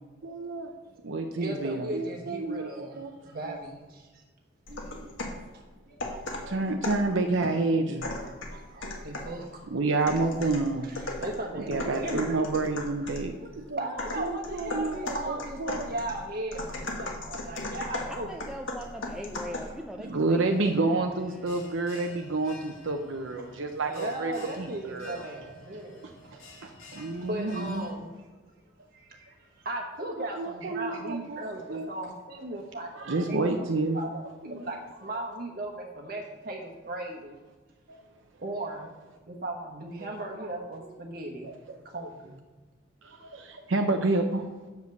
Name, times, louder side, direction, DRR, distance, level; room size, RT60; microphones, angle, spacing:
voice 1, 0.2-0.7 1.0-3.1 3.5-3.6 6.5-8.6 9.2-9.4 9.7-10.9 11.6-13.8 14.2-15.9 20.0-25.3 26.0-26.1 26.6-27.9 30.2-31.9 32.5-32.6 33.0-34.0 34.4-34.7 37.9-38.0 41.4-41.8 43.0-44.5, right 3 dB, 70° right, 4 dB, 0.7 m, -29 dB
voice 2, 1.0-3.0 3.3-4.0 4.7-5.1 5.9-6.9 8.7-9.5 10.8-12.4 13.4-18.3 20.1-20.2 23.8-26.1 27.0-28.1 28.9-29.3 29.6-32.9 33.3-33.7 33.9-37.4 38.4-38.9 39.3-41.5 41.8-42.3, right 1 dB, 50° right, 0 dB, 1.2 m, -37 dB
sound 1, 4.7-5.5 6.0-7.1 8.0-9.4 10.1-13.3 14.0-19.8, left 2 dB, 70° left, 1.5 m, -37 dB
voice 3, 18.1-21.7, equal, 5° right, 1 dB, 0.5 m, -41 dB
Bell, 20.4-27.9, left 1 dB, 90° left, 2.5 m, -50 dB
8.0 x 5.1 x 6.9 m, 1.3 s
head